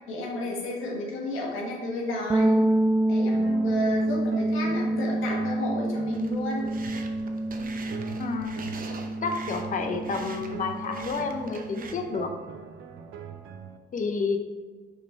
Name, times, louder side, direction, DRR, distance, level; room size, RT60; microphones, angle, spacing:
voice 1, 0.1-2.6 3.1-6.6, left 1 dB, 90° left, -1 dB, 1.4 m, -32 dB
sound 1, 2.3-12.0, right 1 dB, 10° right, 0.3 m, -28 dB
sound 2, 3.3-13.8, right 6 dB, 80° right, 0.6 m, -42 dB
sound 3, 6.1-11.9, right 4 dB, 45° right, 0.7 m, -44 dB
voice 2, 8.2-8.6 9.2-12.3 13.9-14.4, left 4 dB, 40° left, 4 dB, 0.7 m, -30 dB
6.5 x 3.4 x 4.4 m, 1.4 s
cardioid pair, 90°, 20 cm